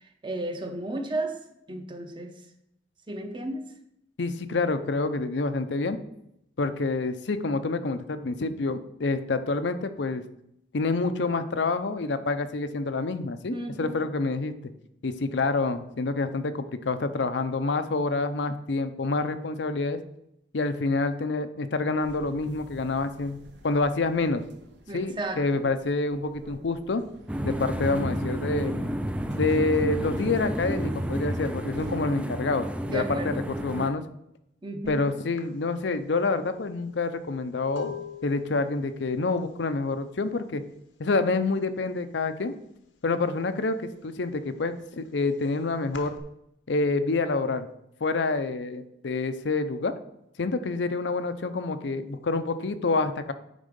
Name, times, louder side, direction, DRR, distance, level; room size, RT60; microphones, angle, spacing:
voice 1, 0.0-2.5 3.1-3.7 13.5-14.0 24.9-25.7 32.8-33.5 34.6-35.2, right 2 dB, 25° right, 5 dB, 0.8 m, -34 dB
voice 2, 4.2-6.0 6.6-10.2 10.7-14.5 15.0-20.0 20.5-23.4 23.6-24.4 24.9-27.0 27.4-28.9 29.4-33.3 33.6-34.0 34.9-38.0 38.2-40.6 41.0-42.5 43.0-46.2 46.7-47.7 48.0-49.9 50.4-53.3, left 3 dB, 70° left, 10 dB, 0.6 m, -27 dB
sound 1, 22.0-32.5, right 1 dB, 70° right, 1.0 m, -50 dB
sound 2, 27.3-33.9, equal, 5° right, 0.3 m, -30 dB
sound 3, 34.9-35.0 35.4-41.1 41.3-41.8 42.1-43.2 43.6-46.2, left 7 dB, 90° left, 1.1 m, -45 dB
9.3 x 3.7 x 5.2 m, 0.78 s
head